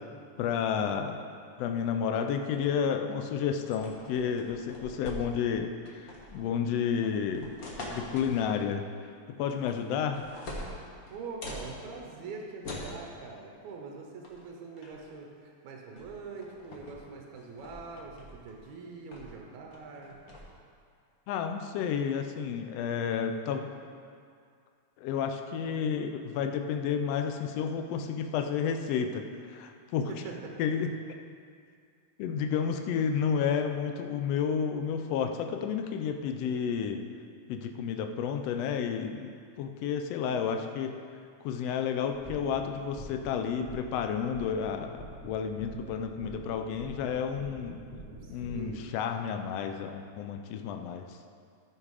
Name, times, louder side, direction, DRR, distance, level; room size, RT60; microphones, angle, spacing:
voice 1, 0.4-1.2 1.6-7.5 7.8-8.9 9.3-10.3 21.3-23.7 25.0-29.2 29.5-30.1 30.6-30.9 32.2-37.0 37.5-40.9 41.4-47.8 48.3-51.0, left 7 dB, 80° left, 5 dB, 1.4 m, -31 dB
sound 1, 3.7-5.5 5.9-6.4 7.0-8.5 9.5-9.9 10.1-11.7 12.6-13.0 14.2-14.4 14.8-15.1 16.0-16.1 16.4-17.0 17.4-18.6 19.1-19.4 19.7-20.4, left 1 dB, 55° left, 1.0 m, -43 dB
voice 2, 11.1-20.2 30.1-30.5 48.2-48.9, right 4 dB, 75° right, 1 dB, 2.3 m, -43 dB
sound 2, 42.0-48.6, right 1 dB, 15° left, 2.2 m, -46 dB
13.5 x 4.9 x 4.8 m, 2.2 s
omnidirectional pair, 3.5 m